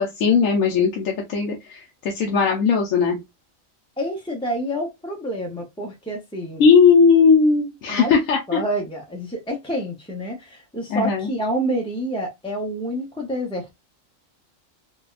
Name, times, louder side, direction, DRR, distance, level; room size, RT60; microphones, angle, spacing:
voice 1, 0.0-3.2 6.6-8.6 10.9-11.3, left 5 dB, 75° left, 1.1 m, -18 dB
voice 2, 4.0-6.6 7.9-8.2 8.5-13.7, right 1 dB, 5° left, 0.4 m, -28 dB
4.1 x 2.3 x 2.3 m
omnidirectional pair, 1.4 m